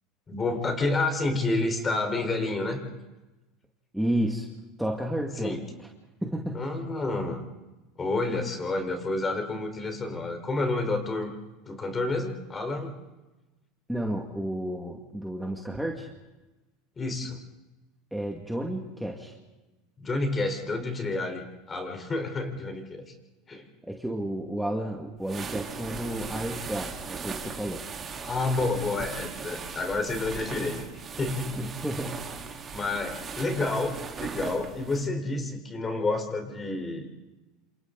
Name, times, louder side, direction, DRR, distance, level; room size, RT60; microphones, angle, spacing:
voice 1, 0.3-2.8 5.4-5.6 6.5-7.4 8.0-11.3 11.7-13.0 17.0-17.4 20.0-23.1 23.5-23.6 28.2-30.8 31.2-31.6 32.7-37.1, left 2 dB, 25° left, 4 dB, 4.6 m, -29 dB
voice 2, 3.9-4.5 4.8-5.5 5.8-5.9 6.2-6.6 13.9-16.1 18.1-19.3 23.8-27.8 31.6-32.2, right 1 dB, 5° right, 0 dB, 2.3 m, -31 dB
sound 1, 25.2-35.0, right 5 dB, 30° right, 3.9 m, -38 dB
28.5 x 27.0 x 4.1 m, 1.1 s
supercardioid pair, 115°, 0 cm